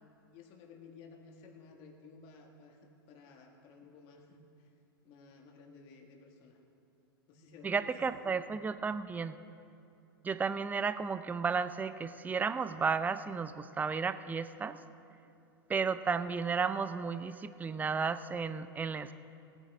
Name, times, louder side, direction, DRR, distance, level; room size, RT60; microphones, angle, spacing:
voice 1, 0.3-4.7 5.0-6.6 7.3-8.6 9.2-9.3, left 4 dB, 45° left, 2 dB, 1.9 m, -55 dB
voice 2, 7.6-9.3 10.2-14.8 15.7-19.1, right 5 dB, 15° right, 13 dB, 0.5 m, -33 dB
19.0 x 9.0 x 3.7 m, 2.7 s
hypercardioid pair, 110°, 12 cm